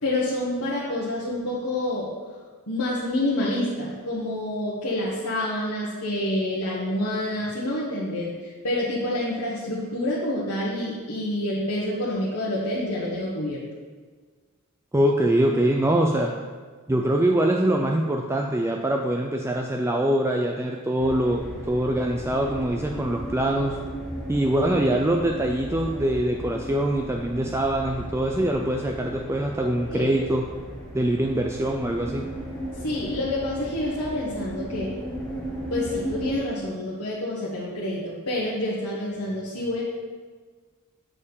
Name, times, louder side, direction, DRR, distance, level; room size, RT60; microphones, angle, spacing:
voice 1, 0.0-2.1 2.7-13.6 29.9-30.1 32.8-34.9 35.7-39.8, left 1 dB, 90° left, -7 dB, 1.4 m, -28 dB
voice 2, 14.9-16.3 16.9-23.8 24.3-30.4 30.9-32.2, right 1 dB, 10° right, 2 dB, 0.4 m, -23 dB
sound 1, 21.0-36.3, equal, 5° left, 1.7 m, -36 dB
7.4 x 4.3 x 6.9 m, 1.5 s
head